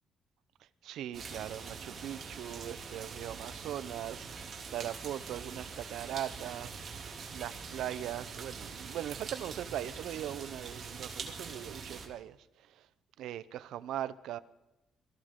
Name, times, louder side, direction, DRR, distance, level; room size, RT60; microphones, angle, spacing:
voice 1, 0.8-12.9 13.2-14.4, right 11 dB, 80° right, 0.6 m, -40 dB
sound 1, 1.1-12.1, right 5 dB, 50° right, 2.6 m, -44 dB
23.0 x 15.0 x 3.7 m
cardioid pair, 90°, 0 cm